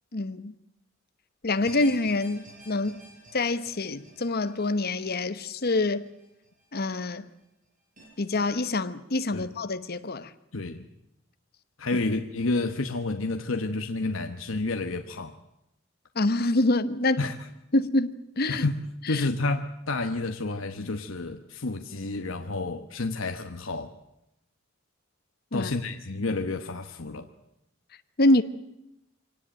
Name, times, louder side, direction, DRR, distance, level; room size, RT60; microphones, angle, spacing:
voice 1, 0.1-0.5 1.4-3.0 3.3-6.1 6.7-7.3 8.2-10.3 11.9-12.0 16.1-17.2 17.7-18.6 19.1-19.3 25.5-25.7 28.2-28.4, left 2 dB, 50° left, 1.1 m, -26 dB
sound 1, 1.6-6.9 7.2-7.3 8.0-8.1, right 1 dB, 40° right, 7.9 m, -50 dB
voice 2, 10.5-10.9 11.8-15.3 17.2-17.4 18.5-18.8 19.1-23.9 25.5-27.3, left 2 dB, 75° left, 1.1 m, -30 dB
24.0 x 18.0 x 9.0 m
head